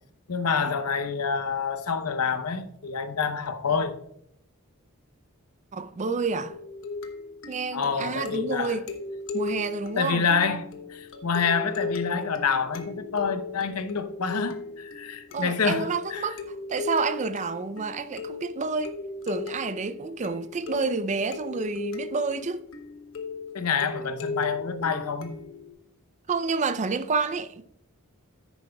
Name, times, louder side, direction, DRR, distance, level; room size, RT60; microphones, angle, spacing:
voice 1, 0.3-4.0 7.7-8.8 10.0-16.3 23.5-25.4, left 5 dB, 85° left, 0.8 m, -27 dB
voice 2, 5.7-6.6 7.5-8.8 9.3-10.3 15.3-19.0 19.2-22.6 26.3-27.6, right 4 dB, 35° right, 0.5 m, -29 dB
sound 1, 6.5-25.7, left 3 dB, 60° left, 1.0 m, -37 dB
10.5 x 9.1 x 2.3 m
head